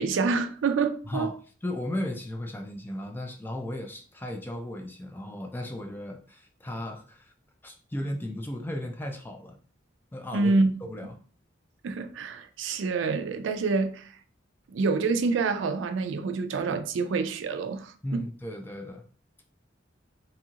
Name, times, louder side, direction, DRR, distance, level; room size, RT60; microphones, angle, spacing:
voice 1, 0.0-1.3 10.3-10.7 11.8-14.1 14.7-18.3, right 4 dB, 75° right, 0.3 m, -27 dB
voice 2, 1.6-7.3 7.6-9.6 10.1-10.5 10.9-11.2 18.0-19.0, left 1 dB, 10° left, 0.3 m, -35 dB
2.7 x 2.4 x 2.7 m
head